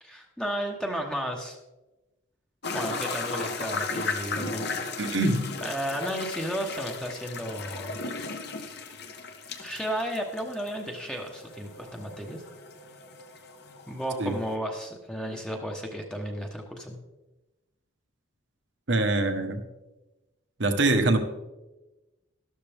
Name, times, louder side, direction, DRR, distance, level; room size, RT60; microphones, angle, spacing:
voice 1, 0.0-1.6 2.7-4.8 5.6-8.0 9.6-12.4 13.9-17.0, equal, 5° left, 1 dB, 1.1 m, -33 dB
sound 1, 2.6-14.5, left 4 dB, 50° left, 1.3 m, -36 dB
voice 2, 5.0-5.5 14.2-14.3 18.9-19.6 20.6-21.2, right 2 dB, 60° right, 6 dB, 1.3 m, -24 dB
12.5 x 12.5 x 3.5 m, 1.1 s
head